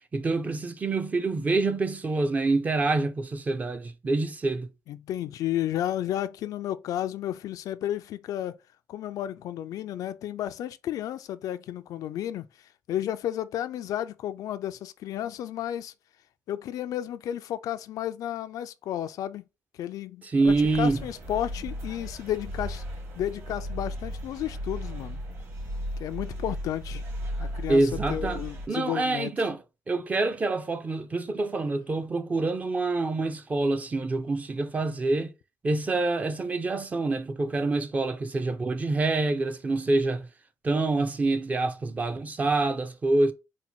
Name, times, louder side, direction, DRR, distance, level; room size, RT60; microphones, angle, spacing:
voice 1, 0.1-4.7 20.2-21.0 27.7-35.3 35.6-40.3 40.6-43.3, right 3 dB, 25° right, 0.5 m, -26 dB
voice 2, 4.9-8.6 8.9-12.5 12.9-15.9 16.5-19.4 19.7-22.8 23.1-25.2 26.0-27.0 27.4-27.8 28.1-29.3, left 11 dB, 70° left, 0.3 m, -32 dB
sound 1, 20.4-28.7, equal, 50° right, 2.1 m, -36 dB
4.2 x 2.2 x 4.3 m
cardioid pair, 130°, 6 cm